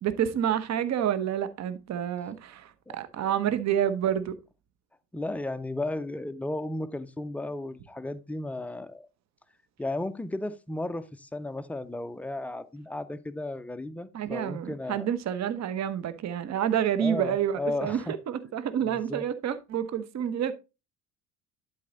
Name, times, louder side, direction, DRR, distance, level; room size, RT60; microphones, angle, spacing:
voice 1, 0.0-4.4 14.1-20.5, right 9 dB, 35° right, 1.0 m, -28 dB
voice 2, 5.1-9.1 9.8-15.1 17.0-18.1 18.9-19.2, left 2 dB, 5° left, 0.4 m, -34 dB
11.5 x 4.2 x 4.0 m
figure-of-eight pair, 60°, 49 cm